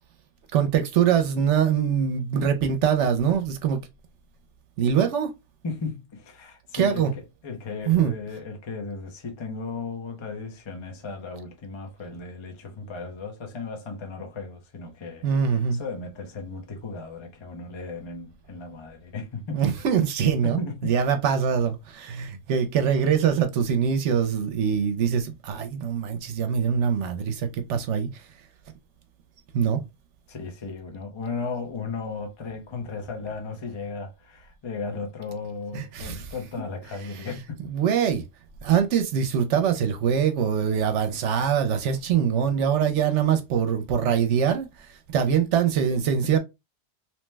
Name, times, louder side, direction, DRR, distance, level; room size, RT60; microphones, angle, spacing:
voice 1, 0.5-3.8 4.8-5.3 6.7-7.1 7.9-8.1 15.2-15.8 19.5-28.2 29.5-29.8 35.7-36.3 37.7-38.2 38.6-46.4, right 8 dB, 80° right, 0.9 m, -23 dB
voice 2, 5.6-7.1 7.4-19.6 20.4-20.9 30.3-37.7 46.2-46.3, left 4 dB, 30° left, 0.6 m, -35 dB
3.0 x 2.1 x 3.2 m
omnidirectional pair, 1.2 m